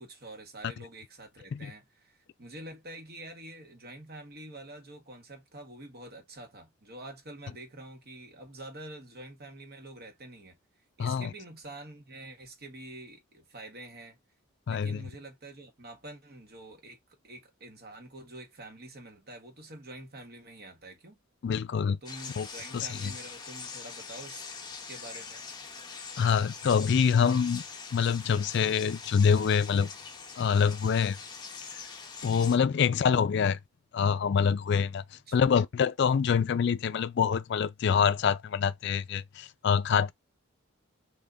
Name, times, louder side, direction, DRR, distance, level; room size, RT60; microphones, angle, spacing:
voice 1, 0.0-10.6 11.0-14.2 14.7-17.0 17.2-21.2 22.0-24.5 24.9-25.4 32.7-32.9 35.1-35.5, right 2 dB, 50° right, 1.1 m, -47 dB
voice 2, 11.0-11.3 14.7-15.0 21.4-22.0 22.4-22.5 22.7-23.1 26.2-27.6 27.9-29.9 30.4-31.2 32.2-33.6 33.9-35.0 35.3-40.1, left 6 dB, 55° left, 0.3 m, -25 dB
sound 1, 22.1-32.6, left 5 dB, 20° left, 0.7 m, -43 dB
3.5 x 2.2 x 3.8 m
head